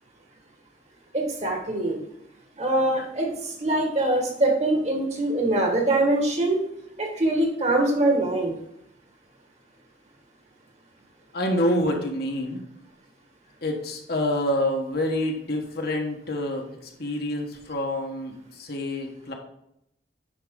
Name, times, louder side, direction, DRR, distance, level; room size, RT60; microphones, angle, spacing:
voice 1, 1.1-2.0 2.6-6.6 7.0-8.5, right 2 dB, 35° right, 1 dB, 1.7 m, -23 dB
voice 2, 11.3-12.6 13.6-16.6 17.0-19.3, left 1 dB, 55° left, 2 dB, 1.4 m, -27 dB
9.7 x 5.6 x 3.8 m, 0.78 s
head